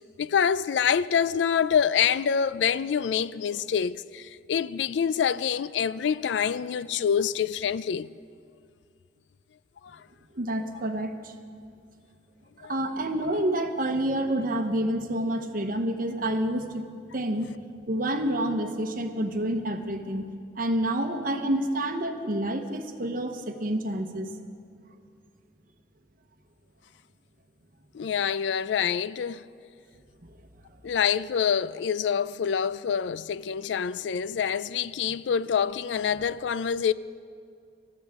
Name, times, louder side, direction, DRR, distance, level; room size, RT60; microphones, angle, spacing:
voice 1, 0.2-8.1 9.8-10.0 12.6-12.7 27.9-29.4 30.8-36.9, left 7 dB, 90° left, 0.4 m, -26 dB
voice 2, 10.3-11.3 12.6-16.8 17.1-17.5 17.9-20.3 20.5-24.3, right 1 dB, 50° right, 1.0 m, -28 dB
20.5 x 14.0 x 3.7 m
head